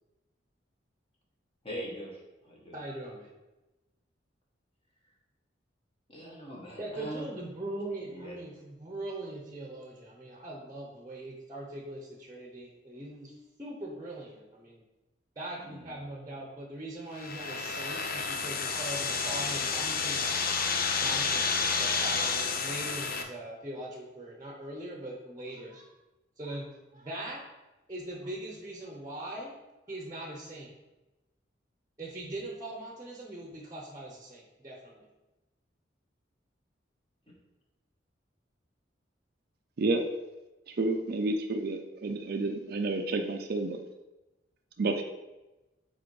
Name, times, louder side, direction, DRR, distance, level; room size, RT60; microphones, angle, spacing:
voice 1, 1.6-2.8 6.1-7.3 8.0-8.4 15.6-16.0, equal, 30° left, -3 dB, 1.6 m, -42 dB
voice 2, 2.7-3.3 6.8-14.8 15.4-20.5 21.0-25.9 26.4-26.7 26.9-27.4 27.9-29.5 29.9-30.7 32.0-35.1, right 1 dB, 20° right, -1 dB, 0.9 m, -41 dB
sound 1, 17.1-23.2, left 5 dB, 55° left, 0.6 m, -30 dB
voice 3, 39.8-40.1 40.7-43.8 44.8-45.0, right 2 dB, 55° right, 3 dB, 0.5 m, -30 dB
5.0 x 4.2 x 4.7 m, 1.0 s
head